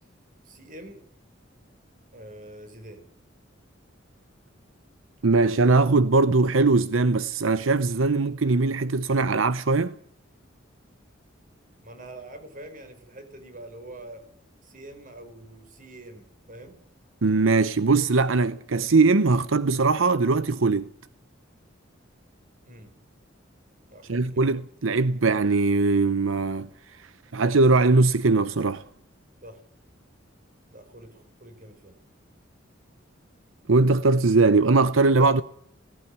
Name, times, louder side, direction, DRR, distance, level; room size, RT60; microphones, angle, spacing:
voice 1, 0.4-1.0 2.1-3.0 11.8-14.2 14.6-16.8 22.6-22.9 23.9-24.5 29.4-29.6 30.7-32.0, right 1 dB, 45° right, 4.7 m, -45 dB
voice 2, 5.2-9.9 17.2-20.9 24.1-26.7 27.0-28.8 33.7-35.4, right 3 dB, 85° right, 0.8 m, -21 dB
18.0 x 16.5 x 9.7 m
head